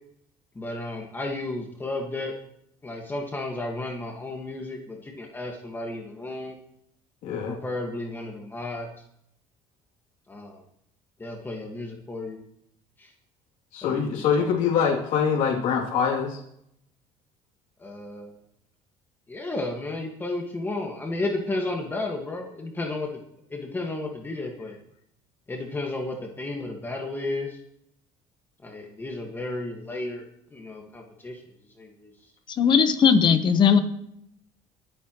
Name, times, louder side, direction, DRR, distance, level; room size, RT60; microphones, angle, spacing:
voice 1, 0.6-2.3 2.8-6.5 7.5-8.9 10.3-10.6 11.2-12.4 13.0-13.1 13.8-14.7 17.8-18.3 19.3-23.1 23.5-24.8 25.5-27.6 28.6-30.2 30.5-31.4 31.8-32.1, left 2 dB, 15° left, 0 dB, 1.7 m, -33 dB
voice 2, 7.2-7.6 13.7-16.4, left 6 dB, 65° left, -5 dB, 2.9 m, -24 dB
voice 3, 32.6-33.8, left 6 dB, 35° left, 10 dB, 1.0 m, -18 dB
23.5 x 8.9 x 3.1 m, 0.74 s
cardioid pair, 135°, 13 cm